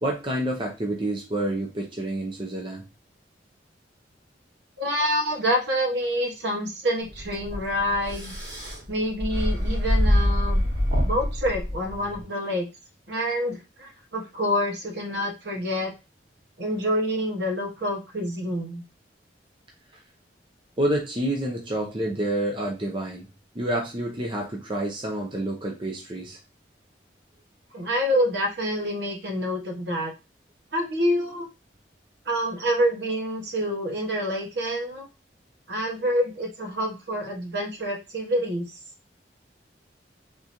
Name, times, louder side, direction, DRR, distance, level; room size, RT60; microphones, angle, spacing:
voice 1, 0.0-2.8 20.8-23.3 23.5-26.4, right 1 dB, 25° right, 0 dB, 0.6 m, -28 dB
voice 2, 4.8-8.3 8.9-10.6 11.0-12.7 13.1-15.9 16.6-18.8 27.7-30.1 30.7-31.5 32.2-35.1 35.7-38.8, equal, 65° right, 1 dB, 1.1 m, -27 dB
sound 1, 7.1-12.2, equal, 85° right, 1.9 m, -25 dB
3.6 x 3.0 x 2.6 m, 0.27 s
head